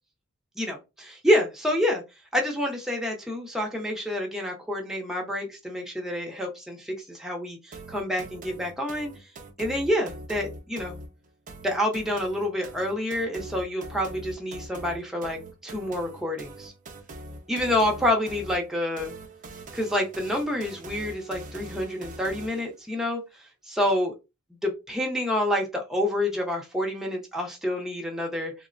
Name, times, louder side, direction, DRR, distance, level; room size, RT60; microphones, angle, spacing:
voice 1, 0.6-2.0 2.3-9.1 9.6-11.0 11.6-16.7 17.5-19.1 19.7-23.2 23.7-24.1 24.6-28.5, left 1 dB, ahead, 0 dB, 0.7 m, -28 dB
sound 1, 7.7-22.7, right 1 dB, 40° right, 0.6 m, -43 dB
3.4 x 2.1 x 2.5 m, 0.25 s
head